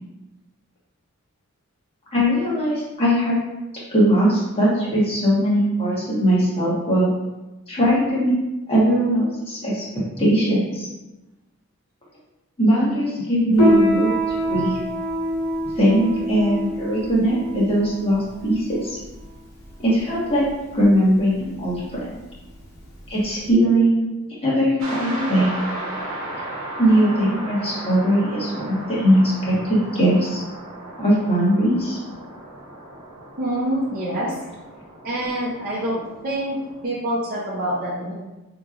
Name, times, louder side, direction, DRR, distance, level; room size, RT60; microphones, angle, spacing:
voice 1, 2.1-3.4 3.9-7.1 7.7-8.4 8.7-10.9 12.6-14.1 14.5-14.8 15.8-18.9 19.8-20.4 20.7-22.2 23.1-24.1 24.4-25.5 26.8-30.4 31.0-32.0, equal, 25° left, -7 dB, 1.2 m, -20 dB
Piano, 13.5-23.5, equal, 65° left, 1.3 m, -25 dB
sound 1, 24.8-36.8, right 1 dB, 60° right, 1.0 m, -35 dB
voice 2, 33.4-34.3 35.0-36.6 36.8-38.1, right 1 dB, 40° right, -8 dB, 0.7 m, -26 dB
5.2 x 3.0 x 2.5 m, 1.0 s
head